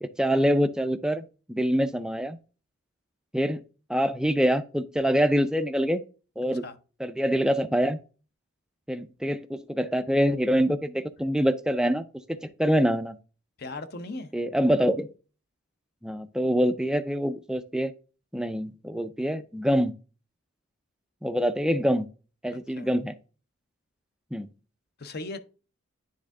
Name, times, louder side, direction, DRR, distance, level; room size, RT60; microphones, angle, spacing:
voice 1, 0.0-2.4 3.3-3.6 3.9-6.0 6.4-6.6 7.0-8.0 8.9-13.2 14.3-15.1 16.0-17.9 18.3-19.9 21.2-22.1 22.4-23.1 24.3-24.5, equal, 5° right, 0.4 m, -25 dB
voice 2, 13.6-14.3 22.5-22.9 25.0-25.4, left 2 dB, 45° left, 0.7 m, -38 dB
9.9 x 3.5 x 3.5 m
head